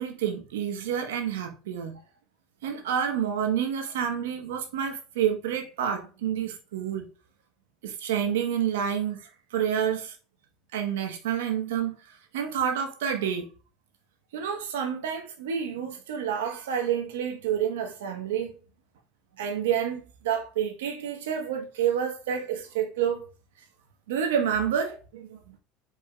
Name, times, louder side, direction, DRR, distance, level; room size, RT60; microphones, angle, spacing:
voice 1, 0.0-2.0 2.6-7.1 7.8-10.1 10.7-12.0 12.3-13.5 14.3-18.5 19.4-23.3 24.1-25.5, right 8 dB, 90° right, 1.0 m, -29 dB
4.9 x 4.1 x 2.2 m
supercardioid pair, 100°, 0 cm